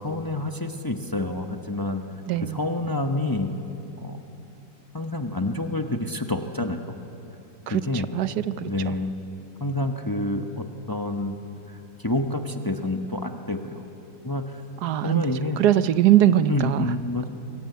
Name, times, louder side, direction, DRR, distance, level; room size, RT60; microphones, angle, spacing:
voice 1, 0.0-2.0 2.4-3.5 4.0-4.2 4.9-6.9 7.7-8.1 8.6-9.1 9.6-11.4 11.7-11.8 12.0-13.8 14.2-14.6 15.0-15.6 16.5-17.3, left 2 dB, 15° left, 5 dB, 1.0 m, -28 dB
voice 2, 2.3-2.6 7.7-7.8 8.1-8.9 14.8-15.2 15.6-16.9, right 12 dB, 80° right, 13 dB, 1.3 m, -21 dB
26.5 x 22.0 x 9.3 m, 2.9 s
omnidirectional pair, 1.7 m